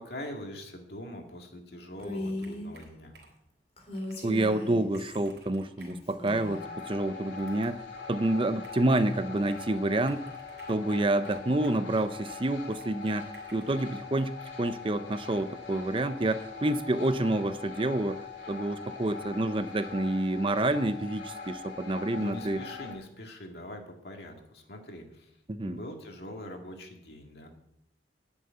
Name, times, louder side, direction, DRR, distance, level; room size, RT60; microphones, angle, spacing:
voice 1, 0.0-3.2 22.2-25.4 25.6-27.5, left 1 dB, 65° left, 3 dB, 2.1 m, -43 dB
Female speech woman speaking, 2.0-2.7 3.8-5.2 5.8-6.7, left 1 dB, 35° left, 3.4 m, -38 dB
Computer keyboard, 2.0-3.5 3.9-4.3 4.6-4.7 4.9-6.6 7.3-7.8 8.6-9.7 10.1-11.9 12.7-13.9, right 3 dB, 80° right, 3.8 m, -56 dB
voice 2, 4.2-7.8 8.1-10.2 10.7-22.6 25.5-25.8, right 2 dB, 30° right, 12 dB, 0.6 m, -28 dB
sound 1, 6.4-22.9, left 5 dB, 90° left, 2.7 m, -42 dB
11.0 x 6.6 x 9.0 m, 0.79 s
head